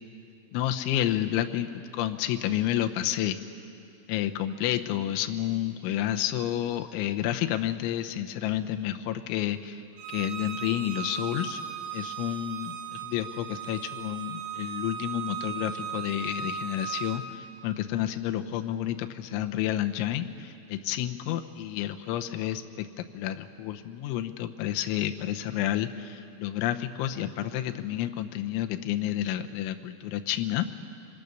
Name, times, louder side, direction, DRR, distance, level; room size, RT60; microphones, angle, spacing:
voice 1, 0.5-3.4 4.1-9.8 10.1-11.6 11.9-30.7, left 12 dB, 80° left, 6 dB, 3.0 m, -30 dB
Bowed string instrument, 10.0-17.2, right 8 dB, 85° right, 4.2 m, -37 dB
27.0 x 24.0 x 6.7 m, 2.5 s
omnidirectional pair, 6.0 m